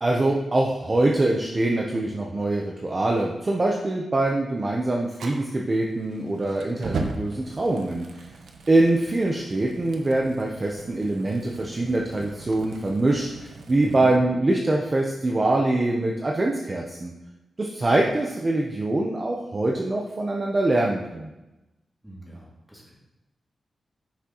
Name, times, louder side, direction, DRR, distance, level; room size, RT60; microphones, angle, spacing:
voice 1, 0.0-8.2 8.7-17.1 17.6-21.3, right 2 dB, 30° right, -1 dB, 0.7 m, -24 dB
Fire, 5.1-14.2, right 3 dB, 85° right, 0.8 m, -39 dB
voice 2, 13.8-14.2 18.0-18.1 22.0-22.9, right 1 dB, 5° right, -6 dB, 2.6 m, -41 dB
10.0 x 6.0 x 3.0 m, 0.98 s
wide cardioid pair, 135°, 0 cm